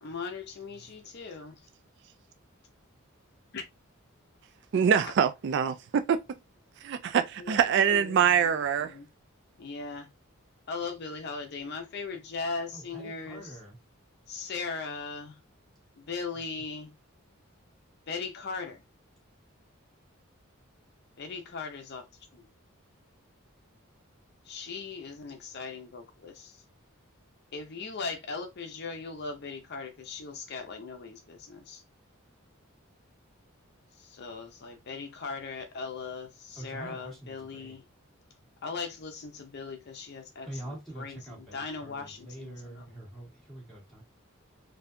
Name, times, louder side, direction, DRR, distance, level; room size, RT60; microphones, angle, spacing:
voice 1, 0.0-1.5 3.5-3.6 7.4-9.1 9.6-10.1 10.7-13.6 14.3-15.4 16.0-16.9 18.1-18.8 21.2-22.0 22.3-22.5 24.5-26.6 27.5-31.8 34.0-37.8 38.6-43.1, left 4 dB, 50° left, 0.6 m, -39 dB
voice 2, 4.7-6.2 6.8-8.9, right 7 dB, 55° right, 0.3 m, -24 dB
voice 3, 12.7-13.7 36.6-37.7 40.5-44.0, right 1 dB, ahead, 2.0 m, -44 dB
4.1 x 2.7 x 2.6 m
head